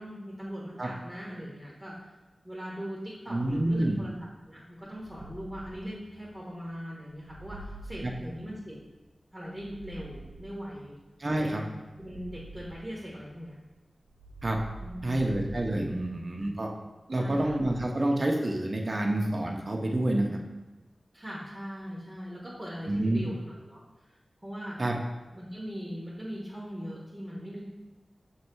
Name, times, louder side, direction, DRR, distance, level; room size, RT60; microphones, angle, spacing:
voice 1, 0.0-2.1 2.4-4.1 4.5-8.8 9.3-11.0 11.4-11.5 12.0-13.6 14.8-15.5 17.2-17.5 21.1-24.2 24.4-24.8 25.3-27.6, equal, 10° right, -6 dB, 1.5 m, -40 dB
voice 2, 3.3-4.0 8.0-8.1 11.2-11.6 14.4-14.6 15.0-16.7 17.1-20.3 22.9-23.3 24.8-24.9, right 1 dB, 45° right, 0 dB, 0.9 m, -28 dB
sound 1, 4.9-6.6 7.1-8.9 9.5-11.0 11.8-13.5 14.1-16.6 17.2-17.8, right 1 dB, 80° right, 0.8 m, -47 dB
6.5 x 3.2 x 4.6 m, 1.1 s
wide cardioid pair, 55°, 0 cm